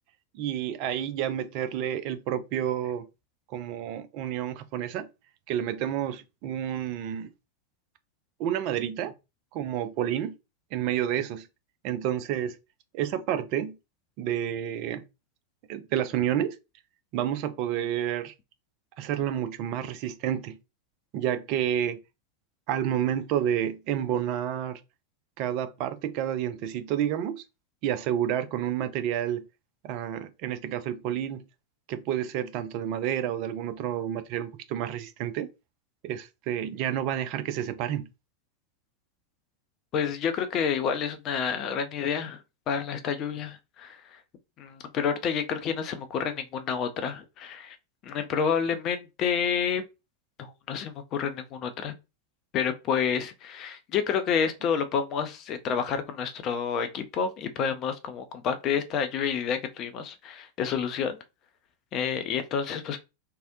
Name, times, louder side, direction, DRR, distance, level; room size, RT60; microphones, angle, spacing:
voice 1, 0.3-3.1 3.5-5.1 5.5-7.3 8.4-9.1 9.5-10.4 10.7-11.5 11.8-12.6 12.9-13.8 14.2-15.0 15.7-16.6 17.1-18.3 19.0-20.6 21.1-22.0 22.7-24.8 25.4-27.4 27.8-29.5 29.8-31.4 31.9-35.5 36.0-38.1, right 10 dB, 45° right, 0.3 m, -29 dB
voice 2, 39.9-42.4 42.7-44.0 44.6-47.8 48.0-49.8 50.4-51.9 52.5-61.2 61.9-63.0, left 7 dB, 35° left, 0.5 m, -29 dB
2.7 x 2.0 x 2.5 m
figure-of-eight pair, 90°, 0 cm